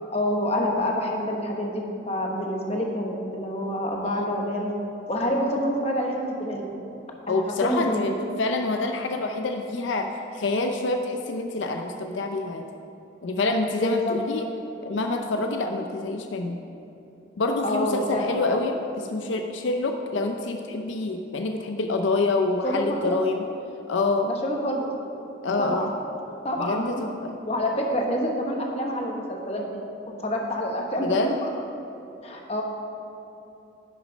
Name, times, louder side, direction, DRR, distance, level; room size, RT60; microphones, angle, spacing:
voice 1, 0.1-4.7 5.1-6.7 7.3-8.1 13.8-14.2 17.6-18.4 22.6-23.2 24.4-24.9 25.6-25.9 26.4-27.0 27.5-29.8 30.2-31.2 31.4-31.5 32.2-32.6, equal, 30° left, 1 dB, 1.0 m, -27 dB
voice 2, 7.3-8.1 8.4-12.7 13.2-14.5 14.8-16.6 17.4-23.5 23.9-24.3 25.4-25.9 26.6-27.3 31.0-31.3, left 3 dB, 75° left, 5 dB, 0.5 m, -26 dB
10.5 x 6.4 x 5.1 m, 2.8 s
head